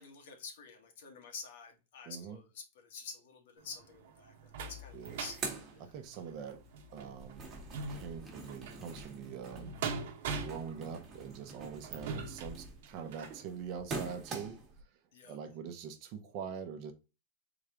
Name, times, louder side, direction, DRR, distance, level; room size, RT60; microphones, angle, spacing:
voice 1, 0.0-5.4 5.7-5.9 15.1-15.4, left 5 dB, 70° left, 1.5 m, -48 dB
voice 2, 2.1-2.4 4.9-5.2 5.8-6.6 6.9-7.5 7.9-9.8 10.3-14.9 15.2-16.9, right 7 dB, 45° right, 0.8 m, -44 dB
sound 1, 3.6-13.4 14.0-14.1 14.5-14.6, right 4 dB, 70° right, 1.0 m, -43 dB
sound 2, 4.4-4.5 4.8-6.5 6.9-14.8, right 4 dB, 25° right, 1.3 m, -46 dB
Thunder / Rain, 6.4-14.1, left 1 dB, ahead, 0.7 m, -56 dB
3.9 x 3.2 x 3.6 m
supercardioid pair, 155°, 0 cm